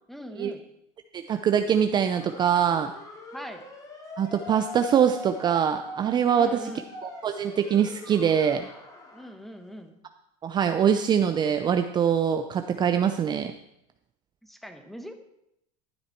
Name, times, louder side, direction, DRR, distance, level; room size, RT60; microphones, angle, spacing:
voice 1, 0.1-0.7 3.3-3.7 6.3-6.9 9.1-10.0 14.4-15.1, equal, ahead, 7 dB, 1.0 m, -41 dB
voice 2, 1.3-2.9 4.2-6.6 7.0-8.7 10.4-13.5, right 8 dB, 25° right, 7 dB, 0.5 m, -23 dB
sound 1, 2.1-9.3, left 1 dB, 20° left, 2.1 m, -43 dB
13.0 x 8.0 x 4.5 m, 0.81 s
supercardioid pair, 125°, 16 cm